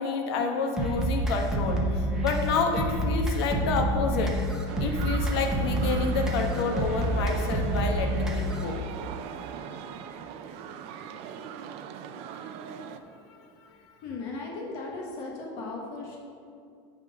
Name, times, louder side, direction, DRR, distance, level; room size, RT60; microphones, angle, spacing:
voice 1, 0.0-4.4 4.8-8.8 13.3-13.7, left 4 dB, 75° left, 4 dB, 1.1 m, -29 dB
sound 1, 0.8-8.8, right 1 dB, 5° right, 0.9 m, -28 dB
sound 2, 4.7-13.0, right 8 dB, 50° right, 0.5 m, -40 dB
voice 2, 14.0-16.2, left 3 dB, 55° left, -1 dB, 1.2 m, -37 dB
9.2 x 3.8 x 6.6 m, 2.4 s
supercardioid pair, 150°, 14 cm